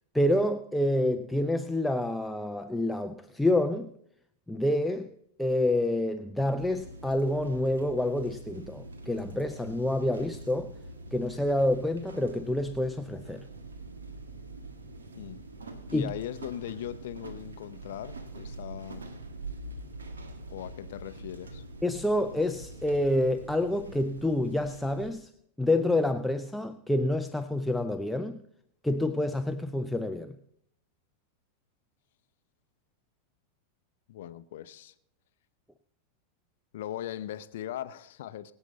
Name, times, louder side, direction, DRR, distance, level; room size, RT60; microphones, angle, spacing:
voice 1, 0.1-3.9 4.5-5.1 5.4-10.7 11.1-13.5 15.9-16.1 21.8-25.3 25.6-28.4 28.8-30.3, left 1 dB, 5° left, 0.6 m, -28 dB
sound 1, 6.6-25.1, right 2 dB, 70° right, 1.5 m, -44 dB
voice 2, 15.9-19.1 20.5-21.6 34.1-34.9 36.7-38.5, left 12 dB, 55° left, 0.6 m, -39 dB
23.5 x 8.0 x 4.0 m
figure-of-eight pair, 90°, 0 cm